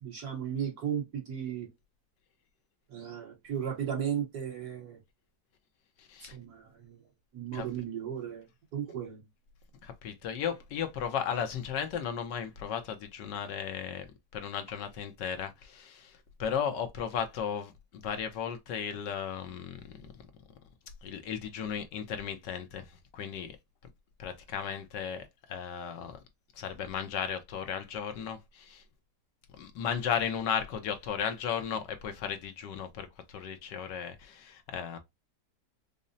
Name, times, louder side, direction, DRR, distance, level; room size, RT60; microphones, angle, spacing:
voice 1, 0.0-1.7 2.9-5.0 6.3-7.0 7.3-8.5 8.7-9.2, right 8 dB, 60° right, 2.1 m, -35 dB
voice 2, 6.0-6.4 7.5-7.7 9.8-14.1 14.3-20.2 21.0-23.6 24.2-26.2 26.5-28.8 29.6-35.0, left 7 dB, 90° left, 1.5 m, -35 dB
5.2 x 2.1 x 2.6 m
omnidirectional pair, 1.8 m